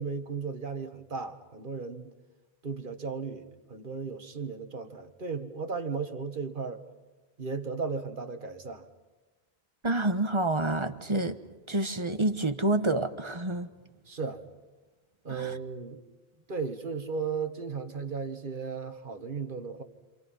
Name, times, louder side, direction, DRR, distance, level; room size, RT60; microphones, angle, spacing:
voice 1, 0.0-2.1 2.6-6.8 7.4-8.9 14.1-14.4 15.2-16.0 16.5-19.8, right 5 dB, 55° right, 7 dB, 1.7 m, -35 dB
voice 2, 9.8-11.4 11.7-13.7 15.3-15.6, right 2 dB, 30° right, 8 dB, 1.2 m, -28 dB
29.5 x 27.0 x 5.6 m, 1.2 s
omnidirectional pair, 1.0 m